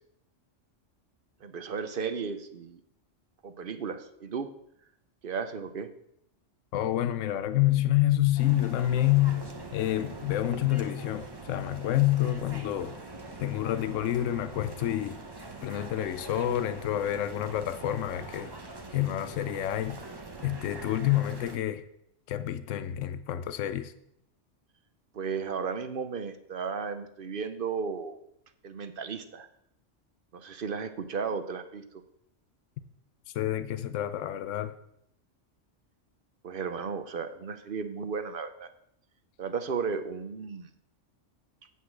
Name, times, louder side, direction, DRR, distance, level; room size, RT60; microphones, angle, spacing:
voice 1, 1.4-2.8 3.4-4.5 5.2-5.9 25.1-28.2 28.6-29.5 30.3-31.8 36.4-38.7 39.4-40.7, right 5 dB, 50° right, 0.8 m, -34 dB
voice 2, 6.7-9.5 9.7-13.0 13.4-15.2 15.6-18.5 18.9-20.0 20.4-21.8 22.3-23.9 33.3-34.7, left 13 dB, 85° left, 0.9 m, -28 dB
sound 1, 8.4-21.6, right 2 dB, 25° right, 0.7 m, -43 dB
8.1 x 5.6 x 7.4 m
omnidirectional pair, 1.3 m